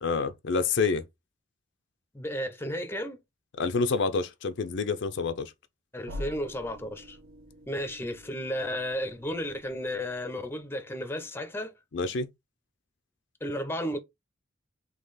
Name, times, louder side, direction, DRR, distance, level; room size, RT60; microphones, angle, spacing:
voice 1, 0.0-1.0 3.6-5.5 11.9-12.3, left 4 dB, 60° left, 0.5 m, -27 dB
voice 2, 2.1-3.2 5.9-7.2 7.7-11.7 13.4-14.0, equal, 10° left, 0.6 m, -33 dB
sound 1, 6.1-10.7, left 1 dB, 80° right, 1.0 m, -46 dB
3.8 x 2.8 x 4.0 m
head